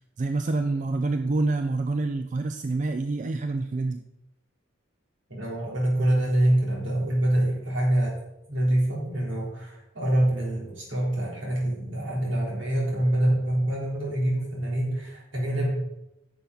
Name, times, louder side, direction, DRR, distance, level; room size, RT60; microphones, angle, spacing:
voice 1, 0.2-4.0, right 3 dB, 40° right, 7 dB, 0.4 m, -27 dB
voice 2, 5.3-8.1 8.5-15.7, right 1 dB, 70° right, -4 dB, 3.6 m, -25 dB
10.0 x 6.9 x 4.0 m, 0.91 s
head